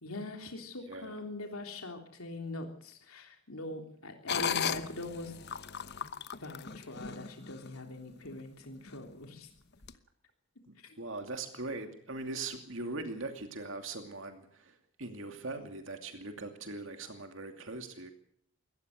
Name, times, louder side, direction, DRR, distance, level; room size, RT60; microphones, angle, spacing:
voice 1, 0.0-5.3 6.0-6.1 6.4-9.5 10.7-11.0, left 2 dB, 85° left, 4 dB, 3.4 m, -42 dB
sound 1, 4.3-7.7 8.2-8.4 8.9-9.2 9.8-9.9, left 7 dB, 50° left, 1.1 m, -36 dB
voice 2, 10.7-18.1, right 3 dB, 60° right, 6 dB, 2.6 m, -41 dB
23.0 x 18.0 x 6.6 m, 0.63 s
head